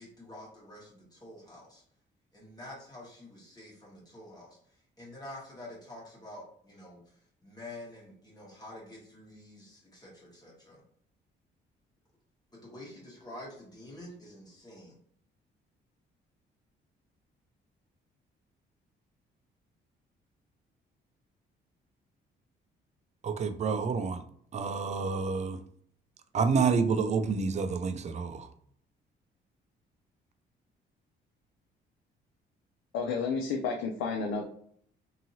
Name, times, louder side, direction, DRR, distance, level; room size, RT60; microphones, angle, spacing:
voice 1, 0.0-1.8 2.3-10.8 12.5-15.0, left 1 dB, 20° left, 1.3 m, -48 dB
voice 2, 23.2-24.2 24.5-25.6 26.3-28.5, right 5 dB, 35° right, 0.4 m, -28 dB
voice 3, 32.9-34.4, left 5 dB, 85° left, 0.5 m, -31 dB
2.8 x 2.7 x 2.7 m
cardioid pair, 90°, 20 cm